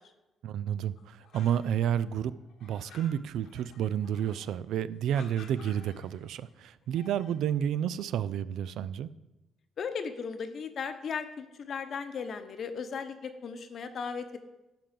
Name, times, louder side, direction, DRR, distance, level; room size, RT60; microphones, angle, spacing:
voice 1, 0.4-2.3 2.6-9.1, right 9 dB, 80° right, 16 dB, 0.3 m, -30 dB
sound 1, 1.0-2.0 2.3-4.6 5.1-6.4 6.8-7.5, left 5 dB, 80° left, 1.3 m, -54 dB
voice 2, 9.8-14.4, left 6 dB, 55° left, 9 dB, 0.9 m, -36 dB
11.5 x 3.9 x 7.5 m, 0.99 s
cardioid pair, 90°, 0 cm